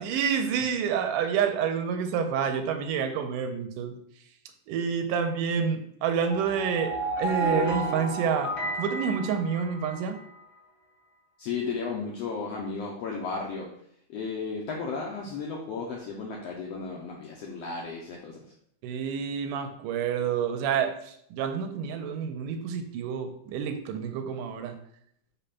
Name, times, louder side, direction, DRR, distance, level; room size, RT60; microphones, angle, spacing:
voice 1, 0.0-3.9 4.7-8.5 8.8-10.2 18.8-24.8, right 7 dB, 90° right, 6 dB, 2.2 m, -28 dB
sound 1, 6.2-10.2, right 2 dB, 50° left, 1.9 m, -31 dB
voice 2, 11.4-13.7 14.1-18.4, left 4 dB, 75° left, -2 dB, 1.5 m, -34 dB
5.0 x 3.6 x 5.7 m, 0.69 s
omnidirectional pair, 3.6 m